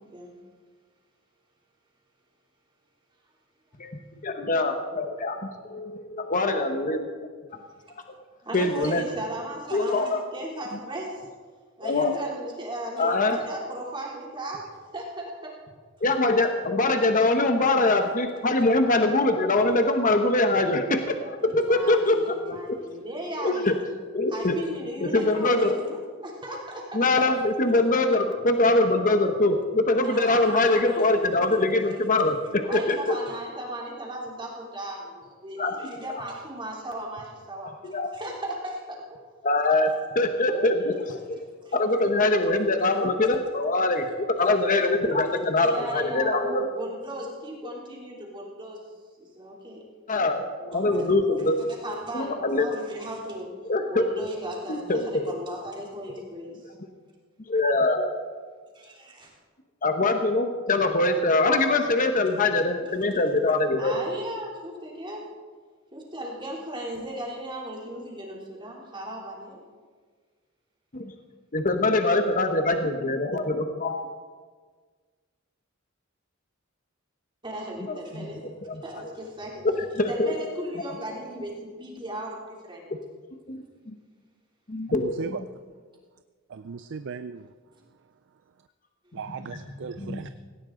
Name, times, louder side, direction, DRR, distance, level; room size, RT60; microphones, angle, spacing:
voice 1, 3.8-5.4 5.6-7.3 8.5-9.0 9.7-10.2 11.8-12.1 13.0-13.4 16.0-22.2 22.5-22.6 23.4-23.7 24.1-24.6 25.1-25.7 26.9-33.2 35.6-35.8 37.8-38.1 39.4-39.9 40.1-41.4 41.7-44.1 44.4-46.6 50.1-51.6 52.1-52.8 53.7-54.1 54.7-55.2 57.5-58.1 59.8-63.9 70.9-71.1 71.5-74.0 78.1-78.3 78.6-78.8 79.6-80.3 83.5-83.6 83.9-84.0 84.7-85.4 90.0-90.3, left 2 dB, 40° left, 6 dB, 1.0 m, -23 dB
voice 2, 8.4-11.3 11.8-14.6 14.9-15.5 21.4-23.7 24.3-27.2 30.0-31.1 32.6-39.0 41.6-41.8 45.6-48.9 49.2-49.8 50.7-51.1 51.4-53.5 53.9-56.7 58.7-59.3 63.8-65.2 65.9-69.6 77.4-78.4 78.8-79.6 80.1-82.9 89.0-89.2, right 1 dB, 25° right, -3 dB, 3.2 m, -36 dB
voice 3, 84.9-85.4 86.5-87.5 89.1-90.3, right 5 dB, 60° right, 11 dB, 0.4 m, -36 dB
18.0 x 17.0 x 3.9 m, 1.6 s
head